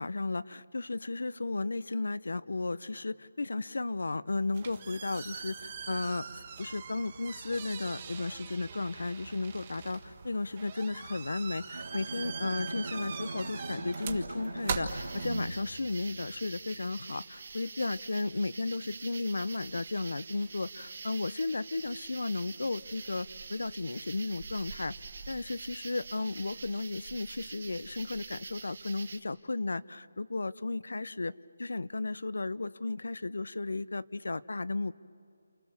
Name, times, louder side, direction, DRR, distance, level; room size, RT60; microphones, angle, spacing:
voice 1, 0.0-24.9 25.3-31.3 31.6-34.9, left 3 dB, 75° left, 18 dB, 0.7 m, -34 dB
sound 1, 4.3-15.7, right 6 dB, 25° right, 1.5 m, -42 dB
Bowed string instrument, 11.7-16.8, right 2 dB, 85° right, 1.6 m, -41 dB
sound 2, 14.9-29.2, right 4 dB, 45° right, 1.5 m, -46 dB
29.0 x 28.0 x 7.3 m, 2.3 s
figure-of-eight pair, 170°, 0 cm